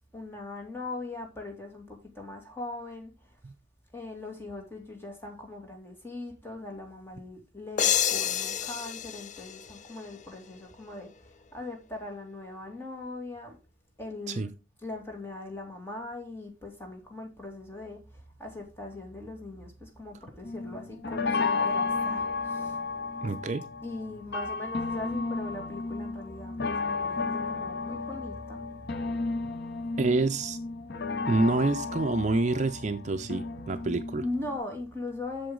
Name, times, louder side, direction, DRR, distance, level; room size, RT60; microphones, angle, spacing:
voice 1, 0.1-3.1 3.9-13.6 14.0-14.5 14.8-22.8 23.8-28.6 29.8-30.0 30.8-31.1 34.2-35.5, left 2 dB, 15° left, 2.3 m, -40 dB
sound 1, 7.8-10.4, left 9 dB, 40° left, 0.4 m, -29 dB
sound 2, 20.4-34.6, left 4 dB, 60° left, 0.8 m, -33 dB
voice 2, 23.2-23.7 30.0-30.6 31.3-34.2, right 3 dB, 40° right, 0.5 m, -27 dB
7.9 x 7.0 x 3.8 m
head